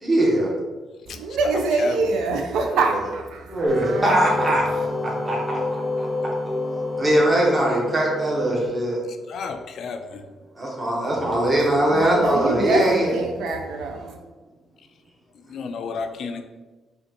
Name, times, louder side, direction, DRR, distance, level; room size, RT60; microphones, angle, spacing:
voice 1, 0.0-0.5 3.5-5.6 6.0-6.3 7.0-9.0 10.6-13.1, right 1 dB, 25° right, -3 dB, 1.1 m, -21 dB
voice 2, 1.1-4.3 11.3-14.1, right 3 dB, 80° right, 3 dB, 0.5 m, -25 dB
sound 1, 3.6-9.3, left 2 dB, 10° left, 0.5 m, -30 dB
sound 2, 3.7-8.7, left 1 dB, 50° right, 0.9 m, -34 dB
voice 3, 9.3-10.2 15.5-16.4, left 5 dB, 65° left, 6 dB, 0.4 m, -31 dB
5.0 x 2.4 x 2.9 m, 1.2 s
cardioid pair, 90°, 0 cm